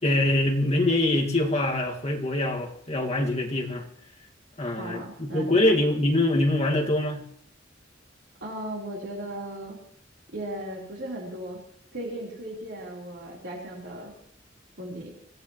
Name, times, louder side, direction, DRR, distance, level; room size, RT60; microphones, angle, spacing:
voice 1, 0.0-3.8 4.6-7.2, left 1 dB, 35° left, 0 dB, 1.9 m, -24 dB
voice 2, 4.8-5.7 8.4-9.8 10.3-11.6 11.9-14.1 14.8-15.1, right 1 dB, 65° right, -4 dB, 3.9 m, -36 dB
24.5 x 16.5 x 3.1 m, 0.69 s
head